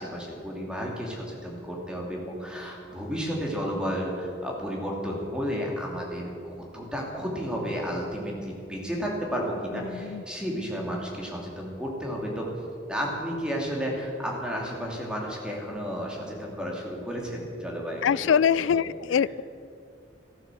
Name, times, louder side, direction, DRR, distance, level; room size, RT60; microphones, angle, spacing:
voice 1, 0.0-12.5 12.9-18.3 18.7-18.9, equal, 5° right, -2 dB, 2.5 m, -32 dB
voice 2, 9.7-10.2 18.0-19.4, left 7 dB, 80° left, 21 dB, 0.3 m, -24 dB
14.5 x 11.5 x 7.6 m, 2.6 s
head